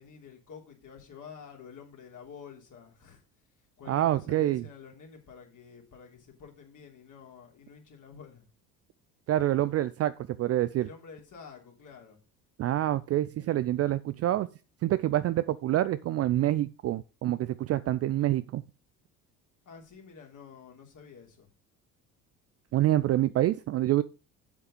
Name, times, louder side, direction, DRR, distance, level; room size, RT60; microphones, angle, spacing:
voice 1, 0.0-3.2 3.8-8.5 10.8-12.2 19.6-21.5, left 6 dB, 40° left, 1 dB, 3.3 m, -49 dB
voice 2, 3.9-4.6 9.3-10.1 10.4-10.9 12.6-14.5 14.8-18.6 22.7-24.0, right 14 dB, 35° right, 14 dB, 0.5 m, -26 dB
8.0 x 7.5 x 5.2 m, 0.33 s
figure-of-eight pair, 55°, 47 cm